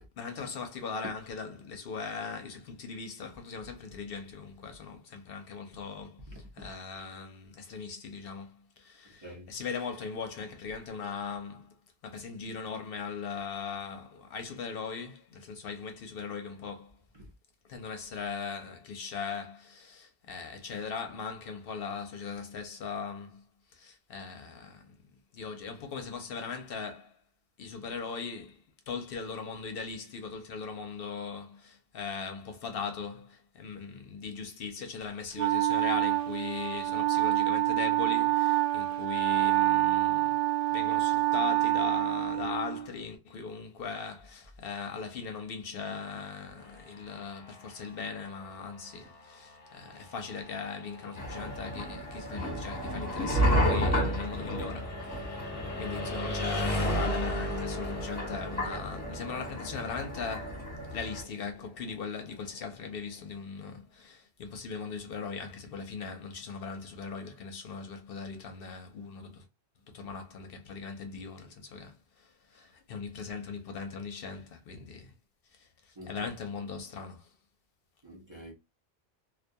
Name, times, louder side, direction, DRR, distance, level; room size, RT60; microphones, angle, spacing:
voice 1, 0.2-11.7 12.0-17.0 17.6-23.4 23.7-25.0 25.3-27.2 27.6-40.4 40.7-55.5 55.8-69.4 69.9-75.1 75.5-77.3, left 5 dB, 65° left, 0.7 m, -39 dB
voice 2, 9.0-9.5 17.1-17.3 48.9-49.1 76.0-76.3 78.0-78.5, equal, 30° right, 0.7 m, -48 dB
Wind instrument woodwind instrument, 35.4-42.9, right 16 dB, 85° right, 0.8 m, -27 dB
sound 1, 46.6-62.4, equal, 35° left, 0.9 m, -39 dB
sound 2, 51.2-61.2, equal, 10° left, 1.1 m, -32 dB
2.3 x 2.2 x 2.6 m
omnidirectional pair, 1.1 m